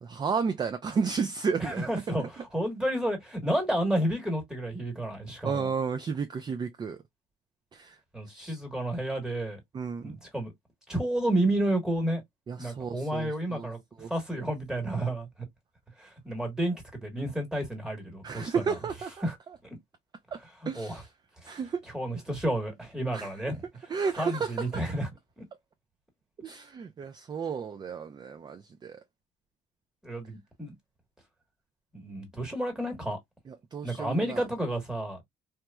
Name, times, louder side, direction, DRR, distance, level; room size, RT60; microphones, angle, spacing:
voice 1, 0.0-1.9 2.2-2.3 5.4-7.0 7.7-8.0 8.3-8.6 9.7-10.2 12.5-13.7 14.0-14.5 18.2-19.3 20.3-20.4 20.7-21.1 21.5-21.8 23.1-23.3 23.9-25.0 26.4-29.0 33.5-34.5, right 5 dB, 25° right, 0.4 m, -33 dB
voice 2, 1.6-2.2 2.5-5.7 8.1-9.6 10.0-10.5 10.9-12.2 12.6-15.3 16.0-18.5 19.2-19.3 20.7-21.0 21.4-21.6 21.9-23.6 24.2-25.1 25.4-25.5 30.0-30.7 31.9-33.2 33.8-35.2, right 1 dB, 5° right, 1.2 m, -31 dB
2.9 x 2.2 x 2.2 m
cardioid pair, 110°, 17 cm